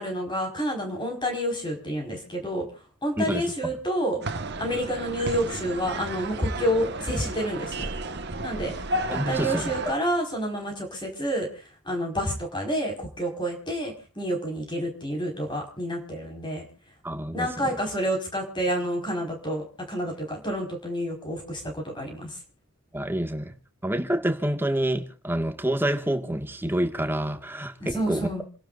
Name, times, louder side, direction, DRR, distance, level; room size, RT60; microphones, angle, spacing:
voice 1, 0.0-2.6 3.0-4.2 4.6-7.9 8.4-8.7 9.1-11.5 11.8-16.7 17.3-22.3 27.8-28.5, equal, 20° left, 4.9 m, -29 dB
voice 2, 3.2-3.5 9.1-9.7 17.0-17.7 22.9-23.5 23.8-27.7 28.1-28.3, right 1 dB, 10° right, 1.7 m, -27 dB
sound 1, 4.2-9.9, right 2 dB, 50° right, 1.4 m, -33 dB
29.0 x 12.0 x 2.5 m
head